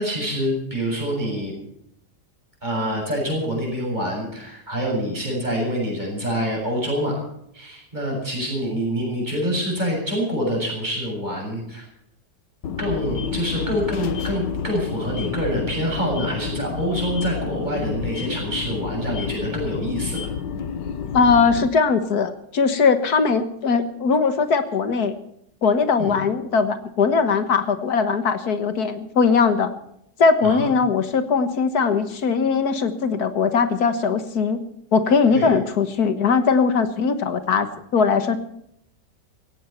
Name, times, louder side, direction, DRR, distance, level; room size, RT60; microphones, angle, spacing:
voice 1, 0.0-1.5 2.6-7.2 7.5-11.9 12.8-20.3 26.0-26.1 30.4-30.7 35.3-35.5, equal, 25° right, -1 dB, 7.8 m, -26 dB
sound 1, 12.6-21.7, left 6 dB, 80° left, 1.7 m, -30 dB
voice 2, 21.1-25.2 25.6-29.7 30.2-34.6 34.9-38.4, left 5 dB, 60° left, 10 dB, 1.8 m, -20 dB
18.0 x 16.0 x 4.5 m, 0.74 s
omnidirectional pair, 1.9 m